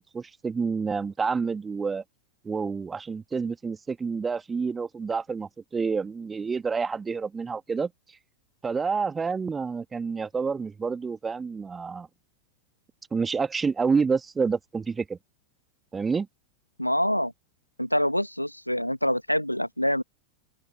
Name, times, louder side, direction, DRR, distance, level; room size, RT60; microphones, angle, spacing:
voice 1, 0.0-2.0 2.4-7.9 8.6-12.1 13.1-15.2 15.9-16.3, right 5 dB, 15° right, 2.2 m, -28 dB
voice 2, 16.8-17.3 17.8-20.0, equal, 90° left, 1.3 m, -25 dB
open air
figure-of-eight pair, 90°, 0 cm